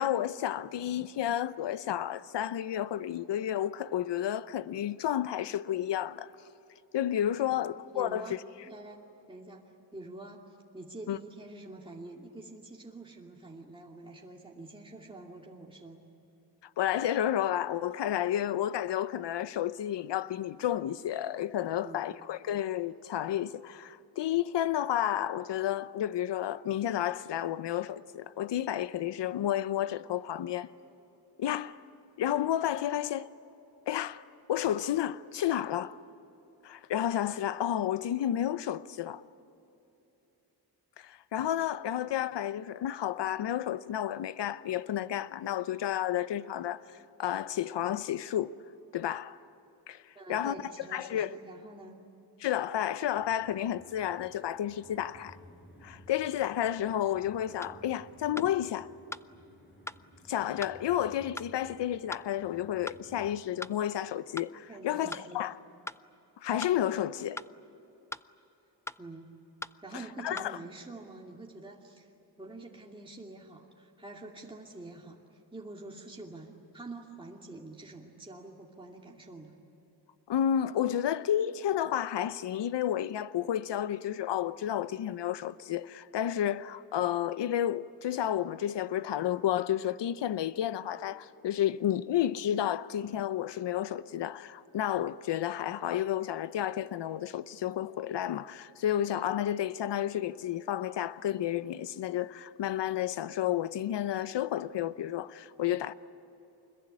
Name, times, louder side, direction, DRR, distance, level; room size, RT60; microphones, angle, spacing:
voice 1, 0.0-6.3 6.9-8.4 11.1-11.2 16.8-30.7 31.4-31.8 32.2-33.3 33.9-34.2 34.5-35.9 36.6-39.2 41.0-46.8 47.2-48.5 48.9-49.4 49.9-50.0 50.3-51.3 52.4-55.4 55.8-58.9 60.3-65.5 66.4-67.4 70.2-70.6 80.3-105.9, left 11 dB, 85° left, 0.8 m, -31 dB
voice 2, 7.9-8.4 8.6-9.0 9.3-16.1 21.7-22.1 50.1-52.0 64.7-65.5 69.0-69.4 69.8-72.1 72.4-79.5, right 2 dB, 10° right, 2.6 m, -46 dB
sound 1, 53.1-63.4, equal, 25° left, 7.2 m, -56 dB
sound 2, 57.6-57.8 58.4-58.5 59.1-59.3 59.9-60.0 60.6-60.8 61.4-61.5 62.1-62.3 62.9-63.0 63.6-63.8 64.4-64.5 65.1-65.3 65.9-66.0 66.6-66.8 67.4-67.5 68.1-68.3 68.9-69.0 69.6-69.8 70.4-70.5, left 1 dB, 5° left, 0.5 m, -40 dB
25.0 x 21.5 x 9.9 m
cardioid pair, 70°, 41 cm